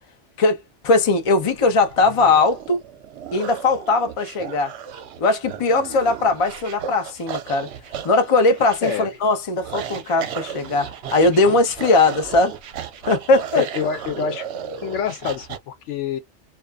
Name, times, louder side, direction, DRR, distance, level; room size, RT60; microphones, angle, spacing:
voice 1, 0.4-2.8 3.3-4.7 5.2-7.7 8.0-12.6 13.0-13.6, left 3 dB, 35° left, 0.6 m, -19 dB
sound 1, 1.2-15.6, right 9 dB, 70° right, 0.8 m, -35 dB
voice 2, 13.6-14.5 14.8-16.2, left 7 dB, 80° left, 1.0 m, -26 dB
2.4 x 2.4 x 2.3 m
omnidirectional pair, 1.2 m